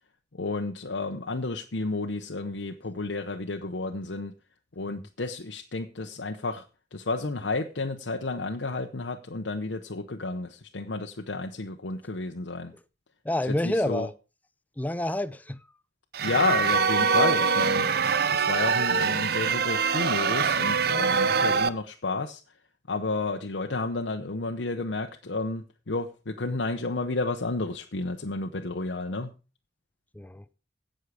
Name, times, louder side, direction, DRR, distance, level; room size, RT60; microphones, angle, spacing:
voice 1, 0.3-4.3 4.8-6.6 6.9-12.7 13.5-14.1 16.2-17.9 18.3-22.4 22.9-29.3, left 3 dB, 70° left, 0.8 m, -31 dB
voice 2, 13.2-14.1 14.8-15.6 30.1-30.4, left 1 dB, 10° left, 0.4 m, -28 dB
sound 1, 16.1-21.7, right 5 dB, 55° right, 0.7 m, -24 dB
16.5 x 6.4 x 4.9 m
head